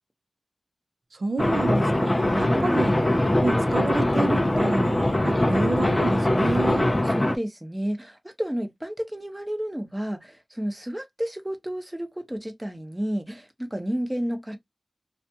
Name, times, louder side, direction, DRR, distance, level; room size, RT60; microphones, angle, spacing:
voice 1, 1.1-2.9 3.4-6.9, right 3 dB, 65° right, 0.5 m, -29 dB
sound 1, 1.4-7.4, left 1 dB, 20° left, 0.4 m, -22 dB
voice 2, 2.5-3.1 7.1-14.6, equal, 10° right, 0.7 m, -31 dB
2.4 x 2.2 x 2.7 m
wide cardioid pair, 80°, 0 cm